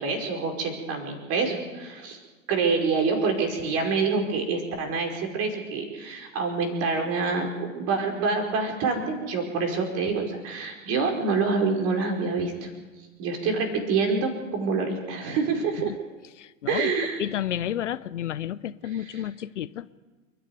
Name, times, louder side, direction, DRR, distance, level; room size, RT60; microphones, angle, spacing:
voice 1, 0.0-2.2 2.5-12.7 13.2-15.9 16.7-17.3 18.9-19.2, right 4 dB, 35° right, 3 dB, 5.3 m, -26 dB
voice 2, 16.4-16.9 17.2-19.9, left 11 dB, 60° left, 16 dB, 0.8 m, -31 dB
28.5 x 11.0 x 9.5 m, 1.3 s
figure-of-eight pair, 90°, 41 cm